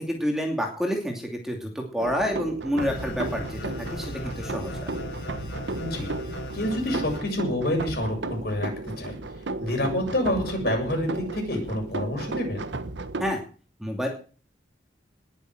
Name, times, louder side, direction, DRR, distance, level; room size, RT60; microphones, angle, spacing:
voice 1, 0.1-4.9 13.2-13.4 13.8-14.1, equal, ahead, 2 dB, 2.6 m, -28 dB
sound 1, 2.0-13.3, right 2 dB, 85° right, 1.1 m, -34 dB
sound 2, 2.8-7.2, equal, 80° left, 3.7 m, -36 dB
voice 2, 5.8-6.1 6.5-9.2 9.6-12.6, left 1 dB, 55° left, 2 dB, 7.1 m, -28 dB
20.0 x 7.3 x 7.9 m, 0.40 s
head